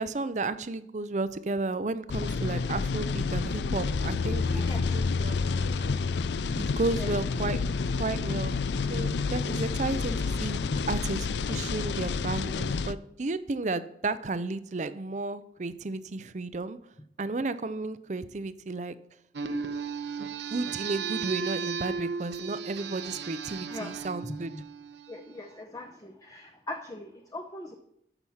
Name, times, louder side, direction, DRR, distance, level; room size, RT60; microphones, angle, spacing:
voice 1, 0.0-4.6 4.9-5.9 6.6-7.7 8.0-8.5 8.9-10.6 10.9-16.8 17.2-19.0 20.2-24.5, right 3 dB, 40° right, 14 dB, 0.5 m, -33 dB
sound 1, 2.1-12.9, left 4 dB, 70° left, 0.4 m, -29 dB
voice 2, 4.5-5.1 7.0-7.1 7.4-7.5 23.7-24.1 24.5-24.6 25.1-27.7, left 2 dB, 20° left, 3 dB, 0.8 m, -41 dB
sound 2, 19.3-25.4, right 5 dB, 75° right, 0.9 m, -35 dB
13.5 x 6.0 x 5.7 m, 0.73 s
head